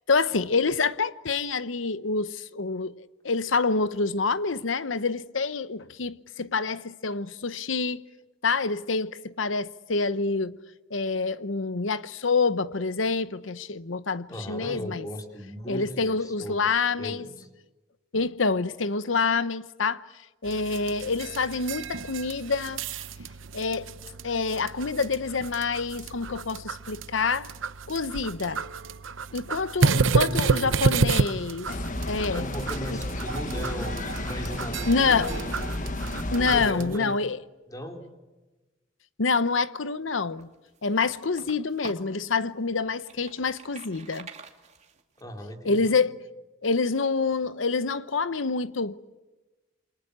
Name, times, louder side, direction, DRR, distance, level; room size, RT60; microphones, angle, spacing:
voice 1, 0.1-8.0 8.4-10.6 10.9-15.1 15.7-17.2 18.1-20.0 20.4-22.8 23.5-23.9 24.2-27.5 27.9-28.6 29.3-31.7 32.1-32.5 34.9-35.3 36.3-37.4 39.2-40.5 40.8-44.3 45.6-46.1 46.6-49.1, left 4 dB, 75° left, 0.9 m, -27 dB
voice 2, 14.3-17.5 30.0-31.1 32.3-35.8 36.4-37.1 37.7-38.0 45.2-46.1, equal, 20° left, 4.0 m, -38 dB
sound 1, 20.4-37.0, right 4 dB, 80° right, 0.8 m, -30 dB
sound 2, 31.7-36.7, left 1 dB, 45° left, 1.3 m, -32 dB
sound 3, 40.1-42.2 42.7-45.2, right 4 dB, 35° right, 2.5 m, -46 dB
28.5 x 24.5 x 8.2 m
head